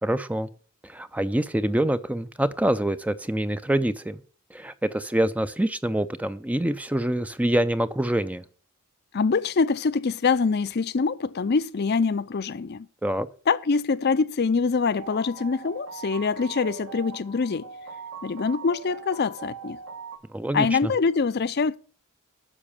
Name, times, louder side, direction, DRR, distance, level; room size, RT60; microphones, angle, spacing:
voice 1, 0.0-0.5 0.8-4.2 4.5-8.4 13.0-13.3 20.3-20.9, right 1 dB, 5° right, 0.4 m, -25 dB
voice 2, 9.1-12.9 13.5-17.6 18.2-19.8 20.5-21.8, left 4 dB, 50° left, 0.5 m, -24 dB
sound 1, 15.0-20.2, right 5 dB, 70° right, 1.8 m, -41 dB
9.9 x 6.3 x 7.0 m
head